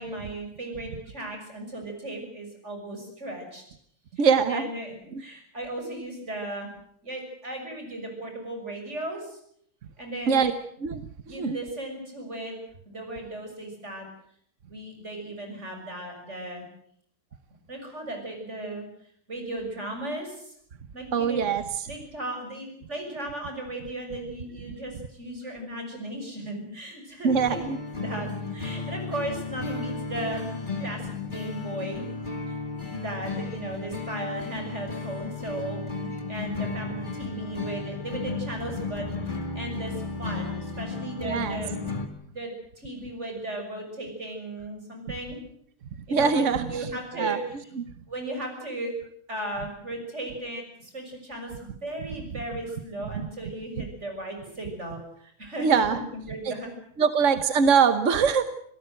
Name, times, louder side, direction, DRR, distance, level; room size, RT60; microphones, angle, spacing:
voice 1, 0.0-3.6 4.3-6.7 7.0-9.4 10.0-10.5 11.3-12.5 12.9-14.1 14.7-16.7 17.7-18.9 19.3-20.5 20.9-21.4 21.9-27.6 28.0-30.4 30.8-32.1 32.5-32.6 32.8-35.8 36.3-41.7 42.3-42.5 42.8-45.4 46.1-47.4 48.1-48.9 49.3-56.7, right 1 dB, 30° right, 3 dB, 6.8 m, -36 dB
voice 2, 4.2-4.7 5.1-5.2 10.3-10.5 10.8-11.6 21.1-21.9 27.2-27.8 41.2-41.6 46.1-46.9 47.2-47.4 47.8-47.9 55.6-56.0 56.4-56.5 57.0-58.4, right 6 dB, 45° right, 10 dB, 1.0 m, -23 dB
sound 1, 27.3-42.1, left 4 dB, 20° left, 2.5 m, -34 dB
26.5 x 17.5 x 7.8 m, 0.68 s
omnidirectional pair, 2.4 m